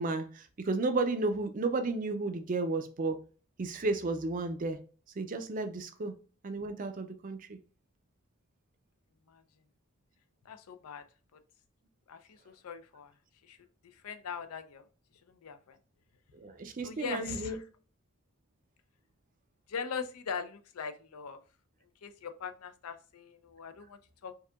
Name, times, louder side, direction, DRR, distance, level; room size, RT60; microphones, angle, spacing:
voice 1, 0.0-3.2 3.6-4.8 5.2-6.2 6.4-7.6 16.3-17.6, right 3 dB, 40° right, 0.4 m, -33 dB
voice 2, 10.5-11.0 12.1-12.4 12.6-13.1 13.5-13.6 14.0-14.8 15.4-15.8 16.8-17.6 19.7-21.4 22.0-24.3, left 6 dB, 85° left, 0.5 m, -40 dB
4.6 x 2.7 x 2.3 m
head